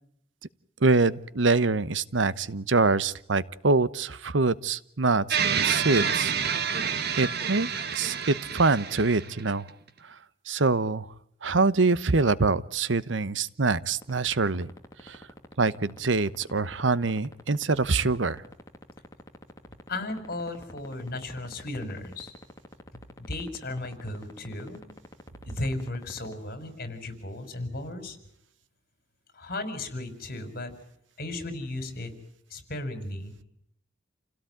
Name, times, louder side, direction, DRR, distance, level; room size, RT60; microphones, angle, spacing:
voice 1, 0.8-6.3 6.6-6.9 7.2-9.7 10.0-10.2 10.5-11.1 11.4-14.7 15.0-15.2 15.6-18.4, right 3 dB, 80° right, 17 dB, 1.0 m, -25 dB
sound 1, 5.3-9.7, right 7 dB, 60° right, 1.7 m, -28 dB
sound 2, 14.0-26.3, left 1 dB, 20° left, 2.6 m, -44 dB
voice 2, 19.9-22.3 23.2-24.8 25.5-28.2 29.3-30.7 31.2-32.1 32.5-33.3, left 2 dB, 50° left, 10 dB, 5.4 m, -35 dB
29.5 x 17.0 x 9.3 m, 0.74 s
head